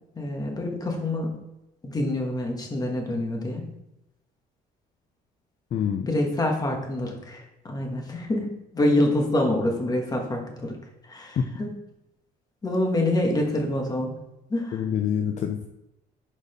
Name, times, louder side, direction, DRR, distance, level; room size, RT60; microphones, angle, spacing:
voice 1, 0.1-1.3 1.8-3.6 6.1-8.5 8.7-10.8 11.0-11.7 12.6-14.1 14.5-14.8, left 1 dB, 20° left, 1 dB, 1.5 m, -26 dB
voice 2, 5.7-6.1 11.4-11.5 14.7-15.7, left 8 dB, 45° left, 6 dB, 0.5 m, -26 dB
5.0 x 4.1 x 5.1 m, 0.92 s
cardioid pair, 110°, 17 cm